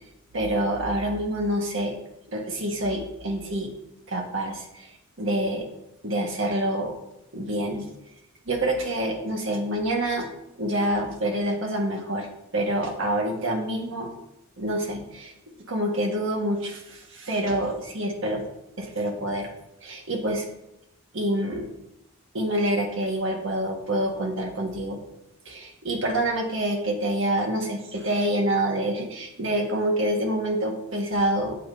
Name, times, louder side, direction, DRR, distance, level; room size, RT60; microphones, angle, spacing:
voice 1, 0.3-2.0 2.3-3.7 4.1-4.9 5.2-5.7 6.0-6.9 7.3-7.9 8.4-10.3 10.5-12.3 12.5-14.1 14.6-15.3 15.7-18.4 18.8-19.5 19.8-20.5 21.1-21.7 22.3-25.0 25.4-31.6, right 1 dB, 60° right, 0 dB, 1.7 m, -27 dB
8.7 x 8.6 x 2.8 m, 0.87 s
head